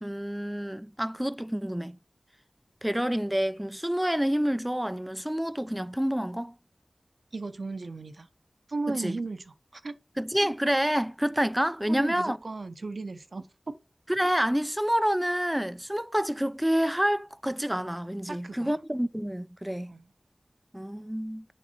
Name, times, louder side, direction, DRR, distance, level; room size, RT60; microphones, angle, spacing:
voice 1, 0.0-2.0 2.8-6.5 8.9-9.2 10.2-12.4 14.1-19.9 20.7-21.5, equal, 10° right, 0.3 m, -28 dB
voice 2, 7.3-8.3 8.7-10.0 11.8-13.7 18.3-18.8 19.9-20.1, right 3 dB, 75° right, 0.6 m, -36 dB
7.5 x 3.3 x 4.2 m
wide cardioid pair, 45°, 0 cm